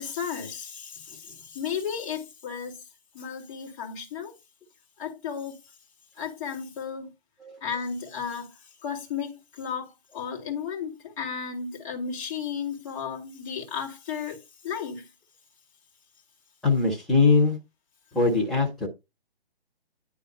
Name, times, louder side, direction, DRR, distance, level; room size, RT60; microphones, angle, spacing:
voice 1, 0.0-2.9 3.1-4.3 5.0-5.8 6.1-7.1 7.6-15.1, left 7 dB, 35° left, 2.3 m, -34 dB
voice 2, 16.6-17.6 18.1-18.9, left 4 dB, ahead, 0.5 m, -21 dB
9.6 x 3.4 x 5.2 m
figure-of-eight pair, 145°, 31 cm